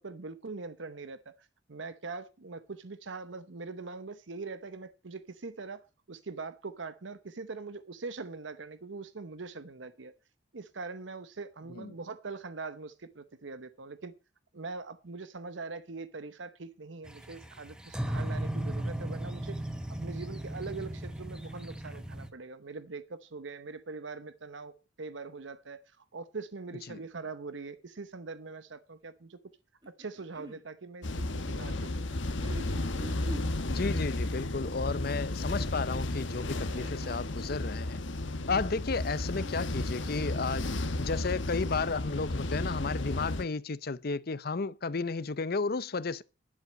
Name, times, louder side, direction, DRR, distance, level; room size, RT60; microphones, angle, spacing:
voice 1, 0.0-10.1 10.5-14.1 14.5-19.6 19.9-29.4 29.9-32.6, right 4 dB, 75° right, 0.9 m, -42 dB
sound 1, 17.1-22.3, right 1 dB, 5° right, 1.0 m, -36 dB
sound 2, 29.8-30.6 32.1-33.6 34.6-35.3 36.4-37.3 38.8-39.7 40.8-40.9, right 1 dB, 20° right, 2.2 m, -47 dB
sound 3, 31.0-43.4, left 2 dB, 75° left, 1.2 m, -33 dB
voice 2, 33.7-38.0 38.5-40.7 41.0-46.2, left 4 dB, 50° left, 0.7 m, -33 dB
11.0 x 7.5 x 6.3 m
head